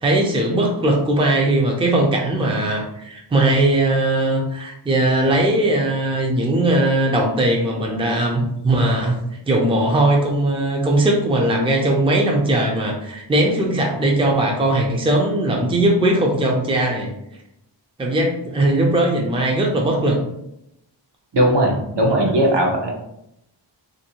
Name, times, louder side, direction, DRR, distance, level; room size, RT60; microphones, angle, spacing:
voice 1, 0.0-9.2 9.5-17.1 18.0-20.2, right 1 dB, 10° right, 0 dB, 0.5 m, -19 dB
voice 2, 21.3-22.9, right 1 dB, 65° right, -1 dB, 0.8 m, -18 dB
2.7 x 2.6 x 2.9 m, 0.81 s
wide cardioid pair, 70°, 45 cm